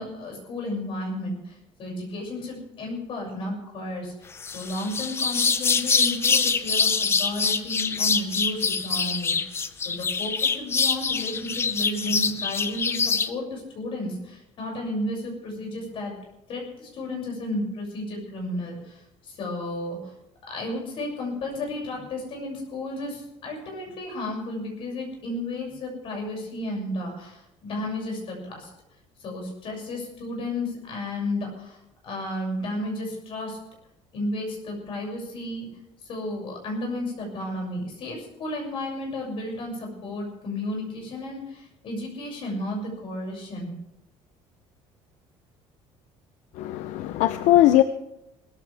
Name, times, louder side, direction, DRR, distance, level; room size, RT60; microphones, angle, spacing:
voice 1, 0.0-16.1 16.5-20.1 20.5-28.7 29.2-31.8 32.0-33.6 34.1-35.7 36.0-43.7, left 1 dB, 45° left, 0 dB, 6.8 m, -33 dB
sound 1, 4.4-13.3, left 5 dB, 20° left, 0.6 m, -24 dB
voice 2, 46.6-47.8, left 14 dB, 75° left, 11 dB, 0.7 m, -19 dB
20.0 x 14.5 x 3.5 m, 0.88 s
cardioid pair, 175°, 12 cm